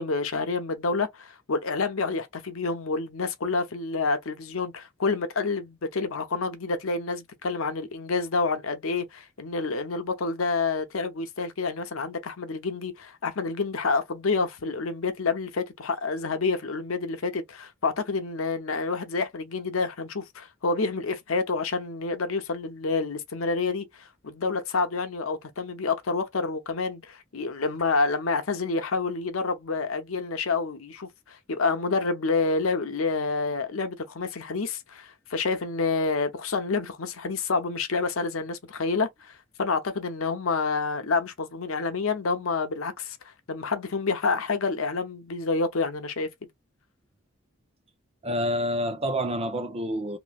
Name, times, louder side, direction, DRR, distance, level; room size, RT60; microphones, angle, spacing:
voice 1, 0.0-43.2 43.5-46.3, left 4 dB, 85° left, 0.7 m, -28 dB
voice 2, 48.2-50.2, equal, 30° right, 0.6 m, -28 dB
3.0 x 2.7 x 2.4 m
head